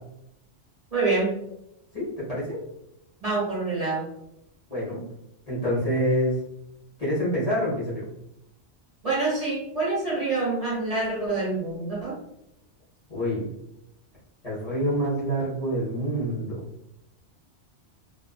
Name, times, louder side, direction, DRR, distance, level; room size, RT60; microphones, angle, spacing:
voice 1, 0.9-1.3 3.2-4.1 9.0-12.1, right 3 dB, 30° right, -9 dB, 1.1 m, -26 dB
voice 2, 1.9-2.6 4.7-5.0 5.5-6.4 7.0-8.0 13.1-13.5 14.4-16.6, equal, 35° left, -9 dB, 0.8 m, -26 dB
2.4 x 2.3 x 2.3 m, 0.81 s
omnidirectional pair, 1.2 m